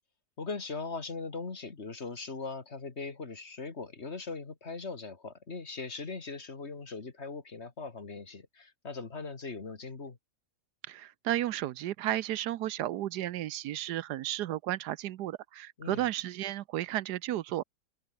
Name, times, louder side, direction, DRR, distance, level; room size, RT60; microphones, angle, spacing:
voice 1, 0.4-10.2 15.8-16.1, left 4 dB, 40° left, 2.2 m, -40 dB
voice 2, 10.9-17.6, right 13 dB, 85° right, 1.3 m, -33 dB
omnidirectional pair, 1.7 m